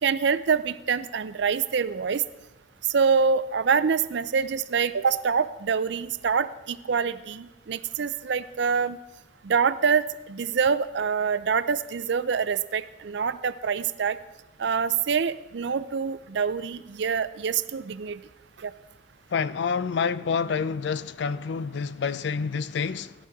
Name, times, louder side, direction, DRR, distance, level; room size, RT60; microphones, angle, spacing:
voice 1, 0.0-2.2 2.9-9.0 9.4-14.2 14.6-18.2 18.6-18.7, right 6 dB, 65° right, 0.4 m, -25 dB
voice 2, 19.3-23.1, left 5 dB, 65° left, 0.4 m, -28 dB
16.0 x 11.0 x 3.6 m
head